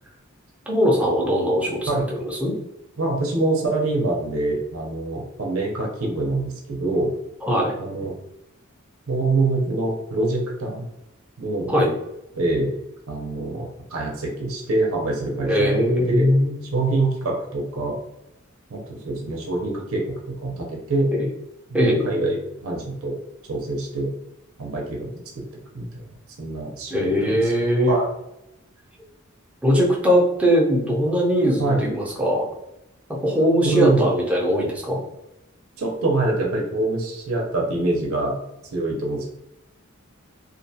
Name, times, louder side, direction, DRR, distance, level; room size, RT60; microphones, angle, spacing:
voice 1, 0.7-2.6 7.5-7.7 11.7-11.9 15.5-16.5 21.1-21.3 21.7-22.0 26.9-28.0 29.6-32.5 33.1-35.0, equal, 5° right, -3 dB, 0.6 m, -20 dB
voice 2, 3.0-7.1 7.8-8.1 9.1-10.8 11.4-11.7 12.4-12.7 13.1-16.3 16.7-18.0 18.7-21.1 21.7-23.2 23.5-24.1 24.6-25.1 25.7-26.0 26.4-28.1 31.6-31.8 33.6-34.1 35.8-38.4 38.7-39.3, right 2 dB, 90° right, -1 dB, 0.6 m, -25 dB
2.5 x 2.3 x 2.7 m, 0.87 s
head